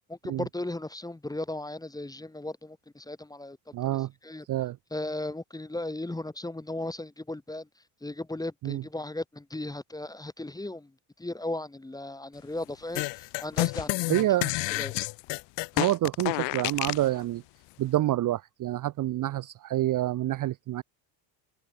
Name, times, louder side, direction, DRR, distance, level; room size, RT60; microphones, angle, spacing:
voice 1, 0.1-3.6 3.9-4.5 4.9-7.7 8.0-10.9 11.2-14.3 14.7-14.9, left 2 dB, 10° left, 1.0 m, -36 dB
voice 2, 3.7-4.1 4.5-4.8 8.6-8.8 14.1-14.6 15.8-17.4 17.8-20.8, right 14 dB, 40° right, 0.6 m, -27 dB
sound 1, 12.9-17.1, left 24 dB, 60° left, 0.5 m, -29 dB
supercardioid pair, 85°, 49 cm